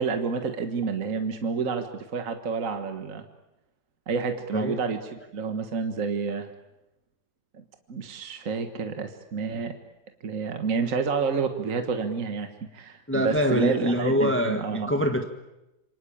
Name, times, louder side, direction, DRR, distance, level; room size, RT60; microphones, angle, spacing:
voice 1, 0.0-3.2 4.1-6.5 7.9-9.7 10.2-14.9, right 5 dB, 50° right, 7 dB, 1.9 m, -29 dB
voice 2, 13.1-15.3, equal, 10° left, 6 dB, 1.3 m, -25 dB
27.5 x 25.0 x 8.7 m, 0.97 s
omnidirectional pair, 1.8 m